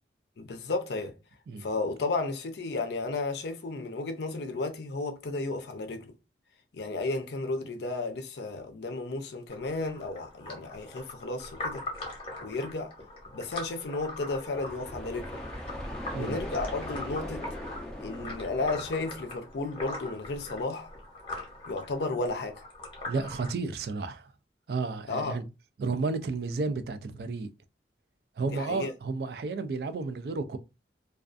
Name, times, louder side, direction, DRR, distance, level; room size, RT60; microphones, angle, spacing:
voice 1, 0.4-1.2 1.6-6.1 6.7-11.8 12.4-12.9 13.3-15.4 16.1-17.5 18.0-20.9 21.7-22.6 25.1-25.4 28.5-28.9, left 3 dB, 65° left, 0.5 m, -33 dB
sound 1, 9.5-23.5, left 2 dB, 30° left, 0.8 m, -42 dB
sound 2, 14.5-20.2, left 1 dB, 5° left, 0.4 m, -40 dB
voice 2, 23.1-24.3 24.7-25.5 25.8-27.5 28.4-30.6, right 3 dB, 60° right, 0.3 m, -32 dB
2.4 x 2.3 x 2.4 m
head